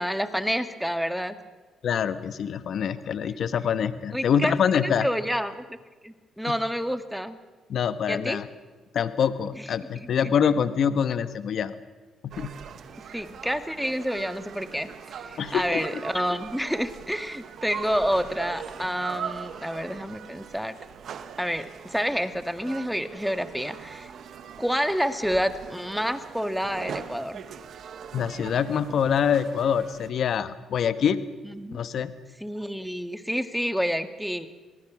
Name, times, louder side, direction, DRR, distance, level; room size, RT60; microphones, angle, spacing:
voice 1, 0.0-1.4 4.1-4.5 4.8-5.6 6.0-7.4 8.1-8.4 10.2-10.3 13.1-14.9 15.3-20.8 21.4-24.1 24.6-27.4 31.4-31.8 32.4-34.5, equal, ahead, 8 dB, 1.8 m, -28 dB
voice 2, 1.8-5.1 7.7-8.5 8.9-11.7 12.2-12.5 15.4-16.0 28.1-31.2 31.7-32.1, left 7 dB, 65° left, 11 dB, 1.2 m, -25 dB
sound 1, 12.3-30.1, right 7 dB, 65° right, 1.5 m, -41 dB
25.5 x 19.5 x 6.2 m, 1.3 s
supercardioid pair, 70°, 0 cm